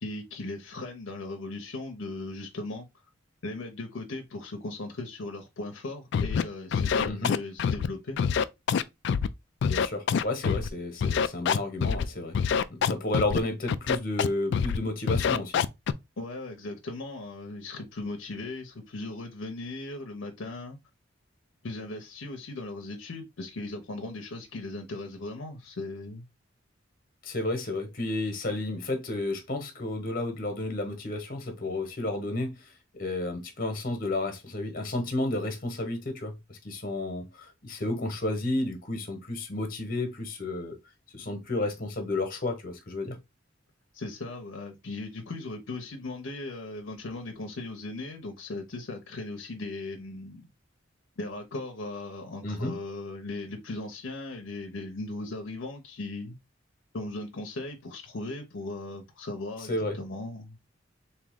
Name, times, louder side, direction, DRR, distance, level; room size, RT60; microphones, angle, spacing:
voice 1, 0.0-2.9 3.4-8.2 16.2-20.8 21.6-26.2 43.9-50.5 51.2-56.4 56.9-60.6, left 2 dB, 80° left, 0.8 m, -38 dB
Scratching (performance technique), 6.1-6.4 6.7-7.9 8.2-9.3 9.6-10.7 11.0-12.0 12.3-13.4 13.7-14.3 14.5-14.8 15.1-15.9, left 7 dB, 65° left, 0.3 m, -25 dB
voice 2, 9.6-12.4 12.7-15.6 27.2-40.7 41.1-43.2 52.4-52.7 59.7-60.0, left 2 dB, 50° left, 1.1 m, -32 dB
3.5 x 2.8 x 3.5 m
head